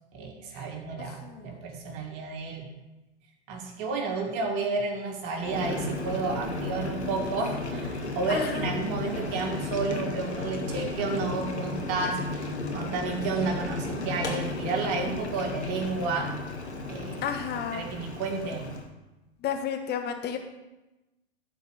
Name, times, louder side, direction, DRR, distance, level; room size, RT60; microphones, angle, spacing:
voice 1, 0.1-2.7 3.5-16.4 16.9-17.2 17.7-18.7, right 3 dB, 45° right, 1 dB, 1.8 m, -31 dB
voice 2, 1.0-1.6 8.3-8.7 17.2-17.9 19.4-20.4, left 7 dB, 30° left, 4 dB, 1.4 m, -32 dB
Boiling, 5.4-18.9, left 2 dB, 90° left, 1.5 m, -34 dB
11.5 x 4.6 x 6.5 m, 1.0 s
figure-of-eight pair, 90°, 32 cm